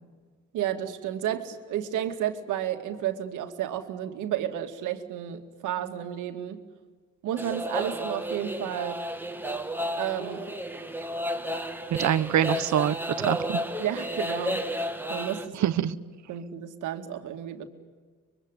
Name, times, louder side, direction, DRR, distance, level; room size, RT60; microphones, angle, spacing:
voice 1, 0.5-6.6 7.2-9.0 10.0-10.5 13.8-15.7 16.3-17.7, right 10 dB, 90° right, 7 dB, 2.4 m, -32 dB
sound 1, 7.4-15.5, equal, 5° right, 2.2 m, -32 dB
voice 2, 11.9-13.6 15.5-16.0, right 10 dB, 70° right, 15 dB, 1.1 m, -25 dB
25.0 x 23.5 x 9.8 m, 1.5 s
cardioid pair, 90°, 30 cm